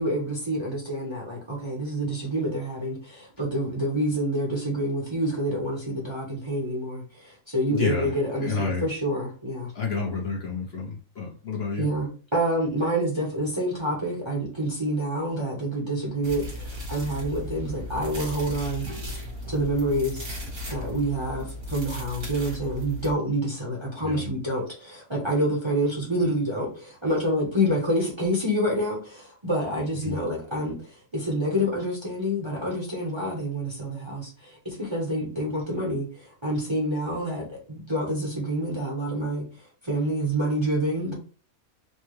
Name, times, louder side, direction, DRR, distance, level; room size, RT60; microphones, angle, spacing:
voice 1, 0.0-9.7 11.8-18.9 19.5-20.3 20.7-39.4 39.8-41.1, equal, 20° right, 0.9 m, -27 dB
voice 2, 7.7-8.1 8.4-8.9 9.7-11.9 24.0-24.3 30.0-30.2, left 4 dB, 50° left, 1.0 m, -30 dB
sound 1, 16.2-23.1, left 1 dB, 70° right, 2.2 m, -36 dB
4.3 x 2.3 x 3.2 m
omnidirectional pair, 1.5 m